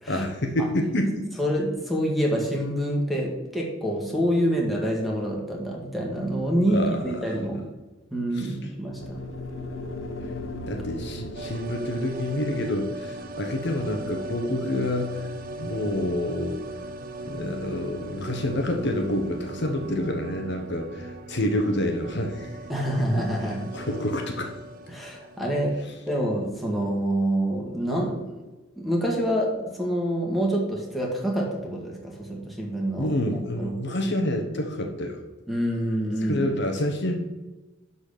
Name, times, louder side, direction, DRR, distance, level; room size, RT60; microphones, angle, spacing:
voice 1, 0.1-1.3 6.7-7.3 8.4-8.6 10.7-15.3 15.6-16.6 17.3-22.6 23.4-24.5 33.0-35.2 36.2-37.2, left 1 dB, 60° left, 4 dB, 1.2 m, -28 dB
voice 2, 1.4-7.6 8.1-9.2 22.7-23.7 24.9-25.8 26.1-28.4 28.8-33.1 33.6-33.7 35.5-36.5, equal, ahead, -2 dB, 2.1 m, -26 dB
sound 1, 9.0-17.2, left 1 dB, 85° left, 1.2 m, -39 dB
sound 2, 11.3-26.2 26.5-26.6, right 2 dB, 50° right, 0.8 m, -39 dB
11.5 x 4.2 x 6.8 m, 1.1 s
head